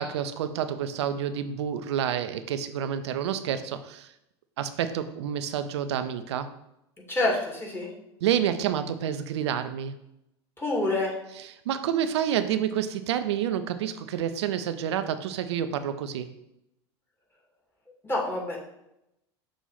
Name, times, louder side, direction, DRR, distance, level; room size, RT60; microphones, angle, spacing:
voice 1, 0.0-4.1 4.6-6.5 8.2-9.9 11.7-16.3, right 9 dB, 80° right, 10 dB, 0.5 m, -29 dB
voice 2, 7.1-7.9 10.6-11.1 18.0-18.6, left 2 dB, 15° left, -3 dB, 2.4 m, -27 dB
6.3 x 3.0 x 5.6 m, 0.84 s
hypercardioid pair, 85°, 14 cm